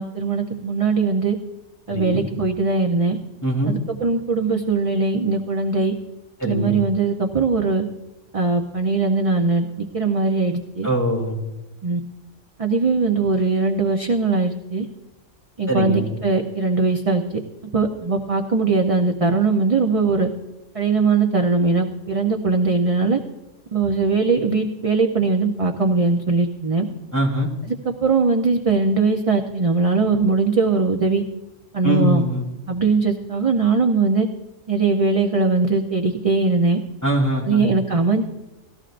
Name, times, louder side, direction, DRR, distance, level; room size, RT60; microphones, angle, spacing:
voice 1, 0.0-1.4 1.9-3.2 3.7-5.9 6.4-7.8 8.3-10.9 11.8-12.0 12.6-14.9 15.6-17.2 17.7-20.3 20.7-23.2 23.7-26.9 27.7-31.2 31.7-32.2 32.7-34.3 34.7-36.8 37.5-38.2, right 4 dB, 35° right, 2 dB, 0.7 m, -20 dB
voice 2, 1.9-2.2 3.4-3.7 6.4-6.7 10.8-11.3 15.7-16.1 27.1-27.5 31.8-32.4 37.0-37.7, equal, 15° left, -2 dB, 3.1 m, -22 dB
18.5 x 14.5 x 2.5 m, 1.0 s
omnidirectional pair, 1.3 m